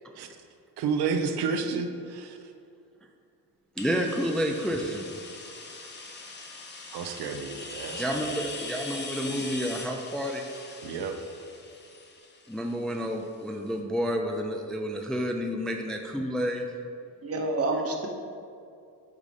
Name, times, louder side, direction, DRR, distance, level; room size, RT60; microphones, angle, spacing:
voice 1, 0.8-2.4 6.9-8.3 10.8-11.1, right 5 dB, 85° right, 5 dB, 0.8 m, -30 dB
sound 1, 3.8-13.4, left 3 dB, 30° left, 0.9 m, -41 dB
voice 2, 3.8-5.1 6.9-7.2 7.9-10.5 12.5-16.7, equal, ahead, 3 dB, 0.4 m, -30 dB
voice 3, 17.2-18.1, right 2 dB, 40° right, 3 dB, 1.0 m, -28 dB
8.3 x 4.0 x 5.1 m, 2.4 s
cardioid pair, 130°, 38 cm